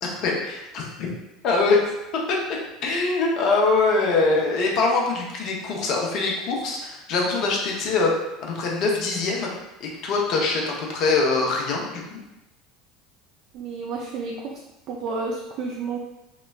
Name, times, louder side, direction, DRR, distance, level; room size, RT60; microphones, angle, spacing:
voice 1, 0.0-1.1 1.4-1.9 2.3-2.4 2.8-8.1 8.4-9.5 9.8-12.2, left 3 dB, 55° left, -1 dB, 0.6 m, -23 dB
voice 2, 13.5-14.5 14.9-16.0, right 4 dB, 55° right, -1 dB, 0.3 m, -30 dB
3.0 x 2.0 x 2.3 m, 0.95 s
hypercardioid pair, 75°, 0 cm